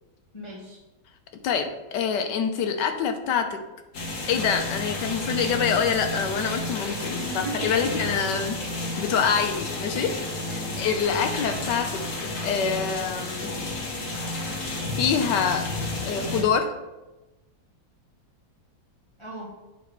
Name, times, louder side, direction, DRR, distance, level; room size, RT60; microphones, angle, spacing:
voice 1, 0.3-0.8 7.1-8.3 9.4-9.6 10.5-10.9 19.2-19.5, right 2 dB, 20° left, -6 dB, 1.2 m, -37 dB
voice 2, 1.4-3.6 4.3-8.6 9.0-10.1 10.8-13.5 15.0-15.7 16.0-16.7, left 6 dB, 70° left, 6 dB, 1.3 m, -25 dB
sound 1, 3.9-16.4, left 2 dB, 45° left, 1.4 m, -31 dB
9.0 x 4.1 x 4.6 m, 1.1 s
omnidirectional pair, 2.1 m